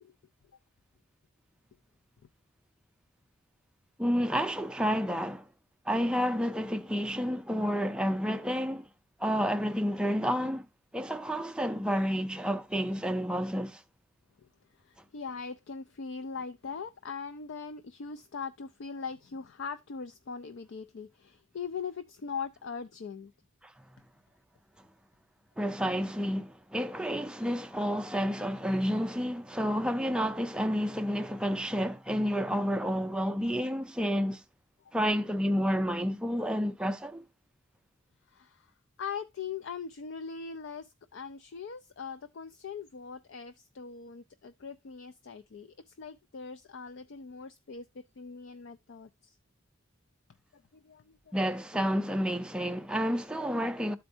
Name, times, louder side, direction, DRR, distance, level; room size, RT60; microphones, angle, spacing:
voice 1, 4.0-5.5 5.9-8.9 9.2-10.7 10.9-13.8 23.6-23.7 25.6-34.4 34.9-37.2 51.3-54.0, equal, 5° right, 0.4 m, -30 dB
voice 2, 14.8-23.3 34.8-34.9 38.3-38.7 39.0-49.4 50.5-51.3, left 5 dB, 60° left, 0.4 m, -41 dB
12.5 x 4.3 x 2.6 m
head